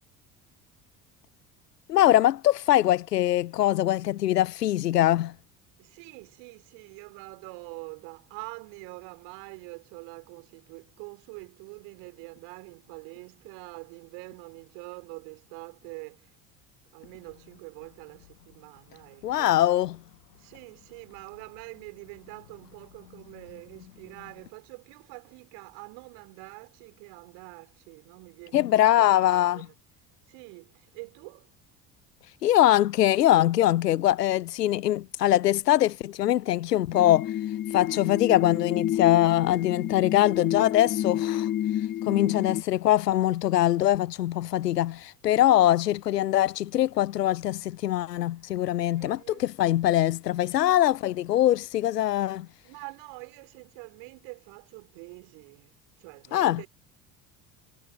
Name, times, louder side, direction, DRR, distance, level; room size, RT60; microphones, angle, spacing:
voice 1, 1.9-5.3 19.2-20.0 28.5-29.6 32.4-37.3 37.7-41.5 42.1-52.5 56.3-56.6, left 13 dB, 80° left, 0.6 m, -23 dB
voice 2, 5.8-16.3 16.9-19.6 20.3-29.7 30.3-31.5 48.9-49.4 52.6-56.7, right 36 dB, 60° right, 4.2 m, -45 dB
sound 1, 36.9-42.6, left 12 dB, 25° left, 0.5 m, -29 dB
figure-of-eight pair, 60°, 47 cm